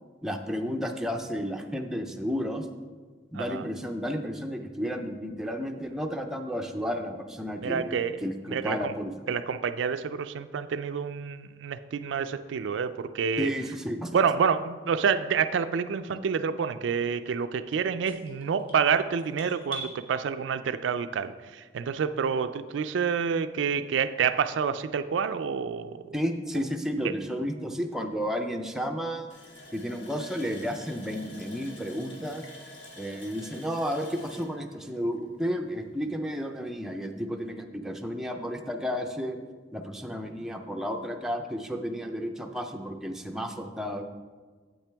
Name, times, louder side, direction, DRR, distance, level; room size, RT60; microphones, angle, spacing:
voice 1, 0.2-2.7 3.3-9.1 13.4-14.1 16.1-16.2 26.1-29.3 29.7-32.4 33.0-39.4 39.7-44.0, equal, 5° right, 3 dB, 0.5 m, -32 dB
voice 2, 7.6-8.2 8.5-8.9 9.3-13.5 14.1-26.0 27.0-27.1, right 6 dB, 85° right, 11 dB, 0.4 m, -28 dB
sound 1, 18.0-19.9, right 2 dB, 30° left, 2.1 m, -41 dB
Water tap faucet, 29.3-35.8 36.1-36.2 36.7-36.8, left 1 dB, 75° left, 1.4 m, -48 dB
8.8 x 8.2 x 3.4 m, 1.5 s
head